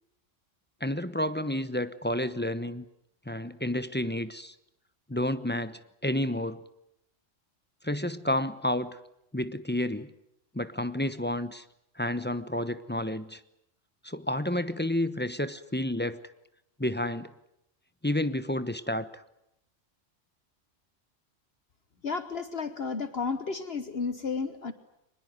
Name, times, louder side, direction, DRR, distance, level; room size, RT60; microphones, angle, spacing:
voice 1, 0.8-2.8 3.3-4.5 5.1-6.6 7.8-9.0 9.3-10.1 10.5-11.6 12.0-13.4 14.0-16.2 16.8-17.3 18.0-19.2, left 1 dB, 10° left, 12 dB, 0.9 m, -30 dB
voice 2, 22.0-24.7, left 4 dB, 55° left, 10 dB, 1.4 m, -32 dB
23.5 x 21.0 x 9.5 m, 0.81 s
omnidirectional pair, 1.3 m